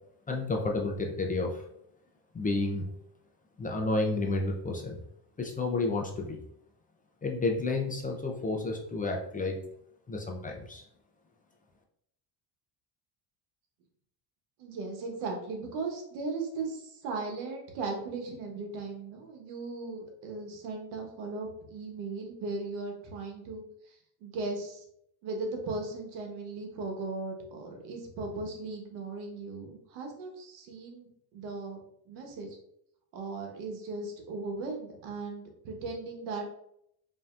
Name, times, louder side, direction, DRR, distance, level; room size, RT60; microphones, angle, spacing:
voice 1, 0.3-1.6 2.3-2.9 3.6-5.0 5.4-6.4 7.2-9.6 10.1-10.8, left 3 dB, 20° left, 1 dB, 0.4 m, -31 dB
voice 2, 14.6-24.8 25.2-31.8 32.1-32.6 33.1-36.4, right 3 dB, 90° right, 2 dB, 1.2 m, -37 dB
5.4 x 2.8 x 2.4 m, 0.74 s
cardioid pair, 125°, 47 cm